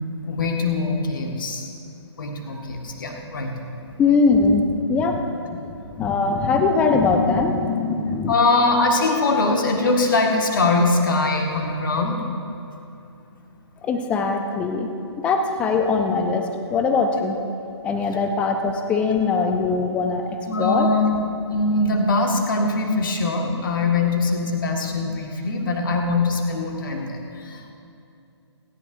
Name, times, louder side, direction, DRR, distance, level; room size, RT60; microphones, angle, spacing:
voice 1, 0.3-1.7 2.1-3.5 8.3-12.2 20.5-21.2 21.5-27.7, left 3 dB, 45° left, 2 dB, 1.6 m, -22 dB
voice 2, 4.0-4.6 4.9-8.3 13.8-14.9 15.2-17.4 17.8-20.9, left 4 dB, 10° left, 5 dB, 0.5 m, -21 dB
27.5 x 11.0 x 2.6 m, 2.7 s
figure-of-eight pair, 135°, 15 cm